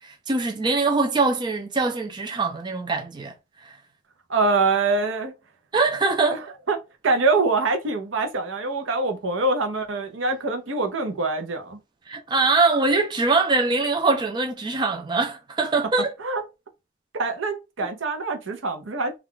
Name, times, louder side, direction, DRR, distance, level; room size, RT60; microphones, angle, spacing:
voice 1, 0.0-3.3 3.6-3.8 5.7-6.4 12.1-16.1 17.8-17.9, right 3 dB, 25° right, 0.3 m, -23 dB
voice 2, 4.3-5.3 6.3-6.4 6.7-11.8 16.2-16.4 17.1-19.1, right 3 dB, 75° right, 0.7 m, -24 dB
2.4 x 2.3 x 3.6 m
head